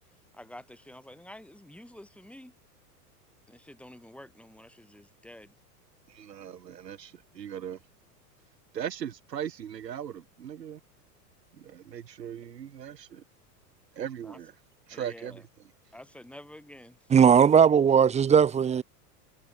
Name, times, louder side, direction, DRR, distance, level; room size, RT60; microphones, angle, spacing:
voice 1, 0.3-2.5 3.5-5.5 14.2-14.4 14.9-15.4 15.9-17.1, left 1 dB, ahead, 6.7 m, -49 dB
voice 2, 6.1-7.8 8.7-10.8 11.5-13.2 13.9-14.5 14.9-15.5, right 9 dB, 90° right, 2.3 m, -39 dB
voice 3, 17.1-18.8, right 7 dB, 15° right, 0.7 m, -18 dB
hypercardioid pair, 105°, 48 cm